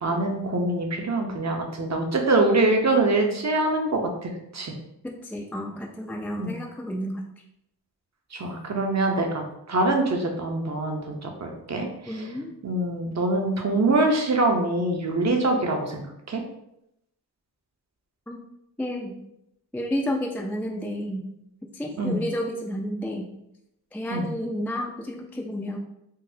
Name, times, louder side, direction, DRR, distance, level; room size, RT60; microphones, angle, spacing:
voice 1, 0.0-4.7 6.4-6.6 8.3-12.3 12.6-16.4 22.0-22.2 24.1-24.3, right 2 dB, 40° right, 2 dB, 0.7 m, -24 dB
voice 2, 5.0-7.2 12.1-12.5 18.3-18.4 18.8-19.1 19.7-21.3 21.7-23.3 23.9-25.8, equal, 5° left, 0 dB, 0.3 m, -31 dB
3.9 x 2.0 x 2.6 m, 0.82 s
cardioid pair, 45°, 40 cm